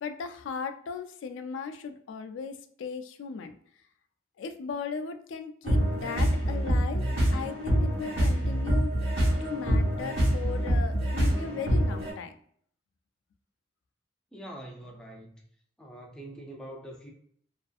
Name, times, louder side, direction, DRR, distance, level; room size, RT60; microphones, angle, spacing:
voice 1, 0.0-3.5 4.4-7.1 7.3-8.9 9.4-12.3, left 5 dB, 85° left, 0.3 m, -37 dB
sound 1, 5.6-12.1, equal, 70° right, 1.0 m, -26 dB
voice 2, 14.3-15.4 15.8-17.1, right 1 dB, 5° left, 0.3 m, -44 dB
2.5 x 2.3 x 2.4 m
head